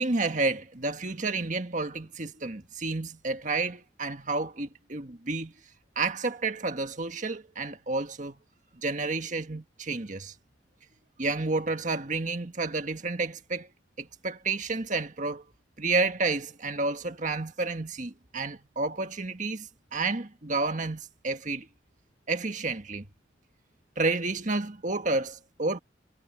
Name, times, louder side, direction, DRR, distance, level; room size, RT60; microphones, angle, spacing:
voice 1, 0.0-5.5 5.9-8.4 8.7-10.3 11.2-13.7 14.0-15.4 15.8-21.7 22.3-23.1 24.0-25.8, right 3 dB, 40° right, 1.6 m, -30 dB
head